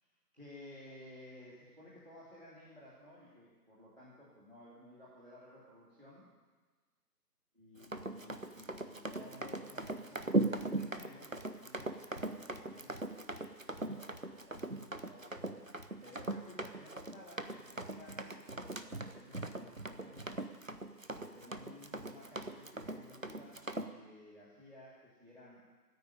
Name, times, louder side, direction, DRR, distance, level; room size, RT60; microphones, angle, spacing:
voice 1, 0.3-6.2 7.5-15.4 16.0-18.4 18.7-20.4 21.1-23.6 23.9-25.6, left 1 dB, 35° right, -8 dB, 3.0 m, -56 dB
Run, 7.8-23.9, right 2 dB, 55° right, 0.9 m, -39 dB
14.5 x 9.5 x 9.1 m, 1.4 s
figure-of-eight pair, 180°, 49 cm